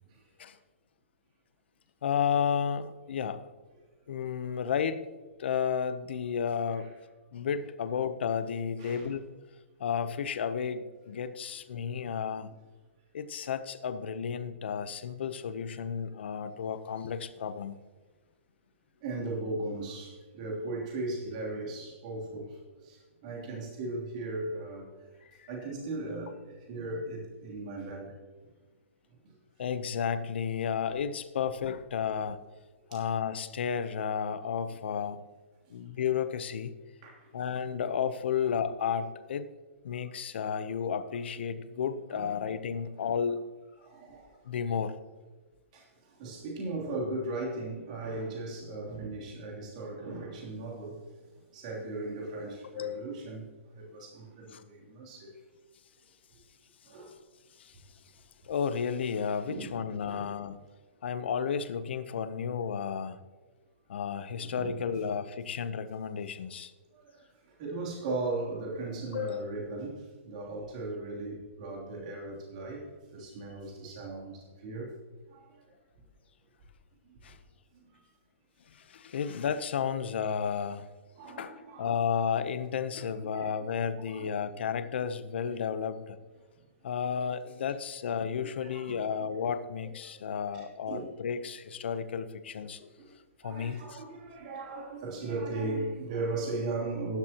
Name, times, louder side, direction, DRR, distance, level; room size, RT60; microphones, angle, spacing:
voice 1, 2.0-3.5 4.1-6.9 7.3-9.3 9.8-12.5 13.1-17.8 25.4-25.5 29.6-32.4 32.9-35.2 35.7-36.7 37.3-39.5 39.8-43.5 44.5-44.9 52.7-53.0 54.5-54.6 57.6-57.8 58.4-60.6 61.0-63.2 63.9-66.7 69.1-69.5 77.2-77.4 78.7-80.9 81.3-86.2 86.8-92.9 93.4-94.0, left 7 dB, 55° left, 12 dB, 0.8 m, -32 dB
voice 2, 19.0-24.9 25.5-28.2 32.9-33.0 37.0-37.3 42.1-42.4 43.8-44.4 45.7-51.0 51.5-53.5 53.7-55.3 56.9-57.2 59.5-59.7 60.0-60.3 64.3-65.0 66.9-72.9 73.1-74.9 75.3-75.6 77.9-78.0 81.2-82.0 82.9-83.5 84.1-84.3 88.6-89.1 89.8-90.2 90.9-91.1 93.0-93.1 93.4-97.2, right 2 dB, 35° right, -2 dB, 3.1 m, -37 dB
15.5 x 11.5 x 3.0 m, 1.3 s
hypercardioid pair, 175°, 7 cm